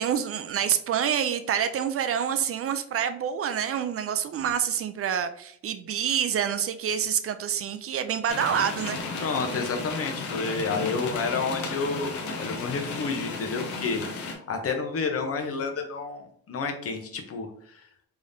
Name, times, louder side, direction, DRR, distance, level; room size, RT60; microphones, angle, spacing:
voice 1, 0.0-9.0, right 8 dB, 50° right, 10 dB, 0.4 m, -27 dB
sound 1, 8.3-14.3, left 3 dB, 75° left, 0.9 m, -34 dB
voice 2, 9.2-17.9, left 4 dB, 50° left, 4 dB, 0.9 m, -30 dB
3.6 x 3.4 x 2.7 m, 0.68 s
cardioid pair, 90°, 30 cm